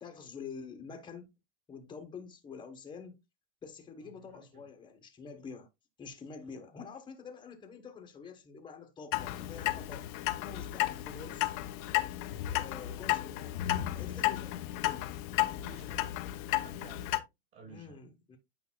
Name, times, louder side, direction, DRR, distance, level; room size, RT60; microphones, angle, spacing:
voice 1, 0.0-1.3 1.7-3.2 3.6-5.7 6.0-11.6 12.4-15.1 17.7-18.4, left 5 dB, 15° left, 1.2 m, -47 dB
voice 2, 4.0-4.6 11.0-11.4 15.5-16.2 16.6-18.0, right 4 dB, 45° right, 4.9 m, -55 dB
Clock, 9.1-17.2, left 15 dB, 50° left, 0.7 m, -33 dB
8.8 x 5.2 x 2.3 m
hypercardioid pair, 120°, 30 cm